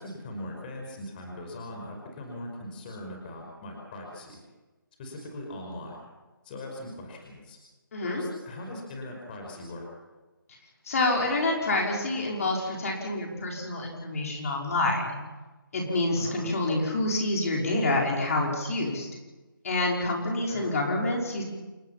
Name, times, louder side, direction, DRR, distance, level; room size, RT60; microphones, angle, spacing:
voice 1, 0.0-4.4 5.0-6.0 6.4-7.6 8.0-9.9 16.1-16.4 20.5-20.7, left 1 dB, 25° left, 1 dB, 5.3 m, -40 dB
voice 2, 7.9-8.2 10.8-15.1 15.7-19.1 19.6-21.4, left 2 dB, 40° left, -1 dB, 5.3 m, -27 dB
29.0 x 17.5 x 5.9 m, 1.2 s
figure-of-eight pair, 160°, 12 cm